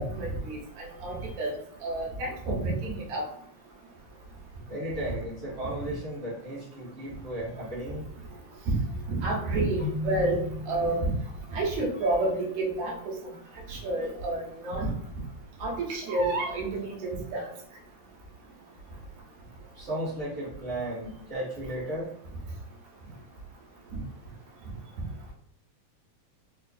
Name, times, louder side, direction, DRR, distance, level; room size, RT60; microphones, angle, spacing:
voice 1, 0.0-1.6 1.8-3.2 8.7-8.8 9.1-11.1 11.5-13.2 13.7-14.9 15.6-17.5 23.9-24.0, right 2 dB, 75° right, -2 dB, 2.3 m, -29 dB
voice 2, 4.7-8.0 19.7-22.1, right 1 dB, 50° right, -8 dB, 0.7 m, -35 dB
Keyboard (musical), 9.8-11.7, left 4 dB, 70° left, 1.3 m, -36 dB
5.0 x 2.4 x 2.5 m, 0.65 s
omnidirectional pair, 3.4 m